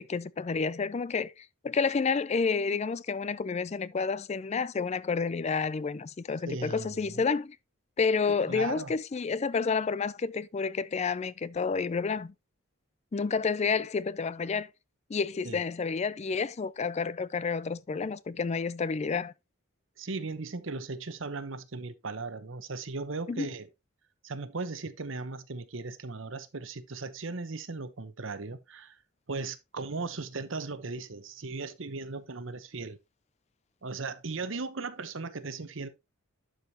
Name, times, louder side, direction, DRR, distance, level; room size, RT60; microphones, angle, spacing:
voice 1, 0.0-7.6 8.0-12.3 13.1-14.7 15.1-19.3 23.3-23.5, left 5 dB, 30° left, 0.3 m, -30 dB
voice 2, 6.5-7.2 8.3-9.0 15.4-15.6 20.0-23.7 24.2-29.0 29.3-33.0 33.8-35.9, right 3 dB, 65° right, 0.9 m, -37 dB
11.5 x 5.0 x 2.8 m
head